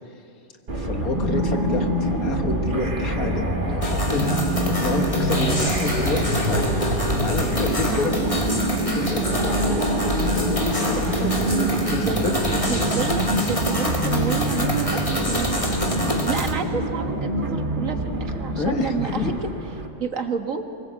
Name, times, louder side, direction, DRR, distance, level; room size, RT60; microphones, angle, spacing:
sound 1, 0.7-19.9, right 1 dB, 35° right, 1.8 m, -25 dB
voice 1, 0.8-4.5 4.8-8.1 8.8-9.9 10.3-11.3 11.9-12.6 18.5-19.3, left 3 dB, 90° left, 5 dB, 2.0 m, -29 dB
sound 2, 3.8-16.5, left 1 dB, 25° left, 1.9 m, -28 dB
voice 2, 12.0-15.0 15.3-15.6 16.2-19.5 20.0-20.6, right 5 dB, 65° right, 5 dB, 1.9 m, -30 dB
23.5 x 21.0 x 8.3 m, 2.6 s
omnidirectional pair, 1.5 m